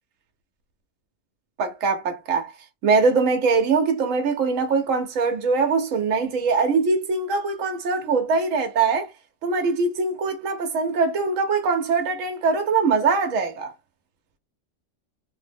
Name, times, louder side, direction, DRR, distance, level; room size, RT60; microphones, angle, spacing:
voice 1, 1.6-2.5 2.8-9.1 9.4-13.7, right 4 dB, 85° right, 1.0 m, -22 dB
3.2 x 2.1 x 3.3 m
omnidirectional pair, 1.3 m